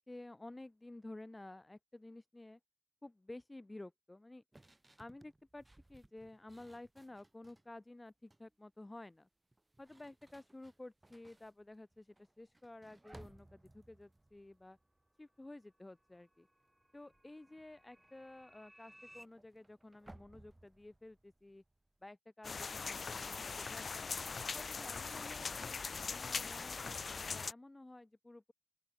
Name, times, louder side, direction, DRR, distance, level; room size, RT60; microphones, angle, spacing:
voice 1, 0.0-2.6 3.0-4.4 5.0-5.6 5.9-9.3 9.8-14.8 15.2-16.5 16.9-21.6 22.0-24.2 24.5-28.5, left 2 dB, 25° left, 0.6 m, -53 dB
sound 1, 4.5-7.7 8.1-8.5 9.4-15.7 16.0-16.3 16.6-22.1, right 1 dB, 20° right, 0.8 m, -63 dB
sound 2, 14.9-19.3, equal, 5° right, 6.3 m, -63 dB
sound 3, 22.4-27.5, left 5 dB, 80° left, 0.4 m, -41 dB
open air
wide cardioid pair, 105°, 0 cm